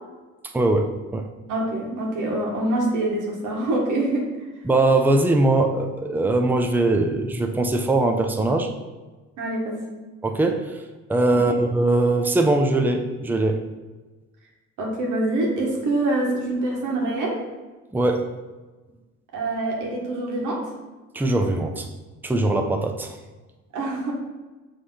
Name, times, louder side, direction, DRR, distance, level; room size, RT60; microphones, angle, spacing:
voice 1, 0.5-1.3 4.6-8.7 10.2-10.7 11.1-13.6 17.9-18.3 21.1-21.9 22.2-23.2, right 2 dB, 5° right, 4 dB, 0.6 m, -21 dB
voice 2, 1.5-4.3 9.4-9.8 11.3-11.6 14.8-17.4 19.3-20.6 23.7-24.1, right 2 dB, 90° right, -1 dB, 1.6 m, -25 dB
6.1 x 3.3 x 5.6 m, 1.2 s
cardioid pair, 90°, 30 cm